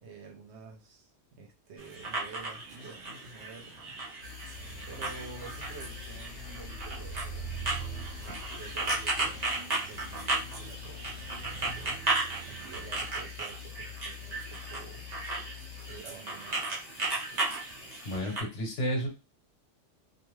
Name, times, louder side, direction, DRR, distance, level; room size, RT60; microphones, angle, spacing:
voice 1, 0.0-3.8 4.9-8.1 8.5-12.0 12.4-15.1 15.8-16.6, right 4 dB, 70° right, 2 dB, 0.9 m, -49 dB
sound 1, 1.8-18.4, right 3 dB, 40° right, 0.7 m, -35 dB
sound 2, 4.2-18.2, left 9 dB, 50° left, 0.5 m, -46 dB
sound 3, 4.5-13.1, right 5 dB, 90° left, 1.1 m, -45 dB
voice 2, 17.3-17.8 18.0-19.1, equal, 75° left, 1 dB, 1.2 m, -33 dB
2.5 x 2.3 x 3.1 m, 0.31 s
omnidirectional pair, 1.3 m